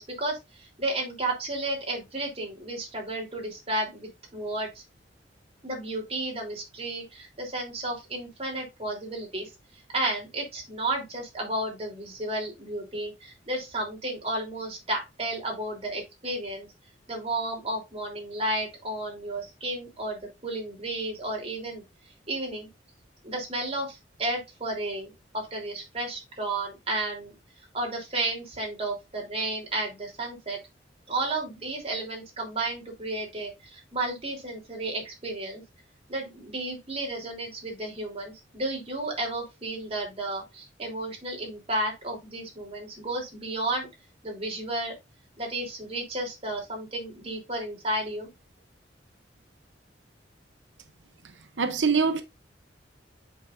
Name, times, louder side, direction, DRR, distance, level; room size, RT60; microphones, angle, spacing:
voice 1, 0.0-4.8 5.6-9.5 9.9-16.7 17.1-21.8 22.3-22.7 23.2-27.3 27.7-30.6 31.1-35.6 36.1-43.9 44.2-44.9 45.4-48.3, right 2 dB, 35° right, 3.4 m, -32 dB
voice 2, 51.6-52.2, right 5 dB, 80° right, 0.8 m, -23 dB
8.6 x 5.6 x 2.5 m
head